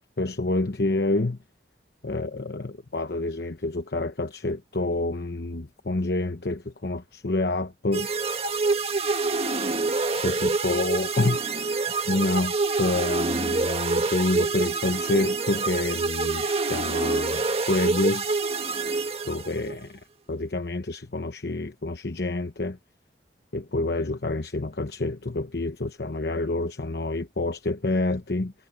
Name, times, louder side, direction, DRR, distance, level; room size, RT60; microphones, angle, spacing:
voice 1, 0.2-1.4 2.0-8.1 10.2-11.6 12.1-12.5 12.8-18.4 19.3-20.0 20.3-22.8 23.5-28.5, left 2 dB, 65° left, 1.0 m, -28 dB
sound 1, 7.9-19.8, right 3 dB, 35° right, 1.5 m, -26 dB
head